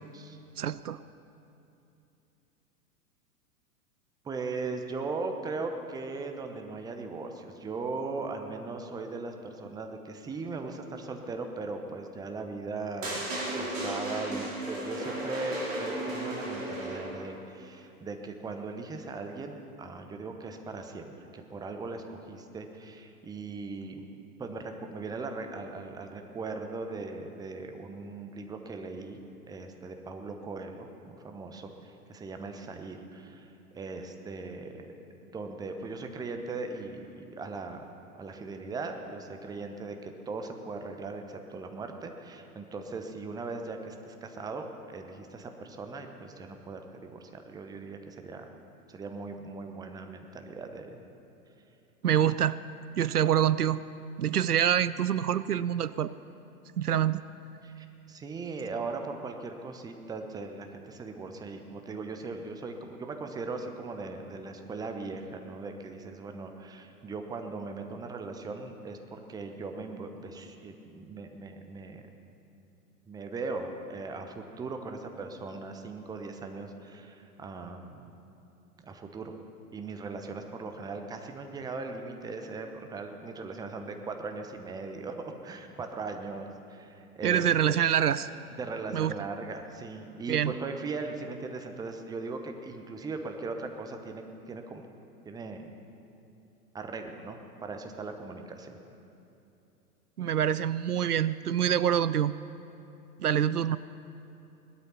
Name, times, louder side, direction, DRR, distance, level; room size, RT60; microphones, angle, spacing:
voice 1, 0.6-1.0 52.0-52.6 53.0-53.8 54.2-56.1 56.8-57.2 87.2-88.3 88.9-89.1 90.3-90.5 100.2-102.3 103.2-103.8, right 9 dB, 80° right, 16 dB, 0.5 m, -26 dB
voice 2, 4.2-13.3 13.5-24.1 24.4-29.2 29.5-37.8 38.2-48.5 48.9-51.0 57.6-72.0 73.1-78.1 78.8-79.4 79.7-87.8 88.6-94.8 95.2-95.7 96.7-98.8, right 3 dB, 10° right, 5 dB, 0.8 m, -39 dB
sound 1, 13.0-17.3, right 1 dB, 55° right, 4.8 m, -35 dB
18.0 x 12.5 x 5.7 m, 2.8 s
figure-of-eight pair, 105°, 45 cm